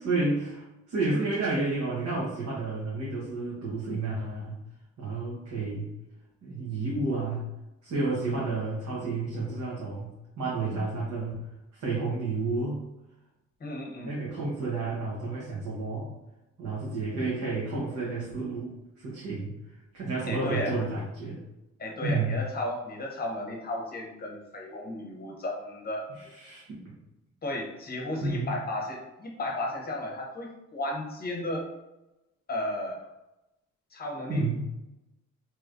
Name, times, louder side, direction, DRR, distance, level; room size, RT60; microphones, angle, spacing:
voice 1, 0.0-4.6 5.0-5.9 6.4-7.5 7.8-11.4 11.7-12.8 14.0-16.1 16.6-18.7 19.0-19.5 19.9-21.4 22.0-22.4 26.2-26.9 28.2-28.5 34.3-34.7, right 3 dB, 65° right, -7 dB, 1.1 m, -31 dB
voice 2, 13.6-14.1 20.3-20.8 21.8-26.1 27.4-31.7 32.5-33.0 33.9-34.5, left 1 dB, 30° left, -1 dB, 0.9 m, -34 dB
3.1 x 3.0 x 2.5 m, 0.95 s
cardioid pair, 90°, 30 cm